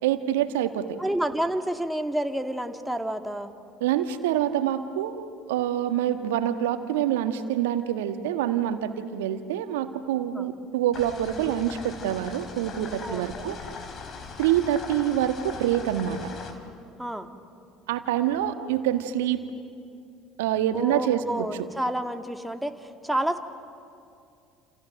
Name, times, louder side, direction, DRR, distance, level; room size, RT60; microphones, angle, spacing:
voice 1, 0.0-0.9 3.8-13.6 14.4-16.2 17.9-19.4 20.4-21.5, right 11 dB, 75° right, 9 dB, 1.4 m, -26 dB
voice 2, 1.0-3.5 10.3-10.5 13.0-13.5 17.0-17.3 20.7-23.4, right 1 dB, 5° right, 6 dB, 2.1 m, -29 dB
sound 1, 10.9-16.5, left 5 dB, 50° left, 3.7 m, -40 dB
29.5 x 28.5 x 6.5 m, 2.5 s
hypercardioid pair, 60°, 0 cm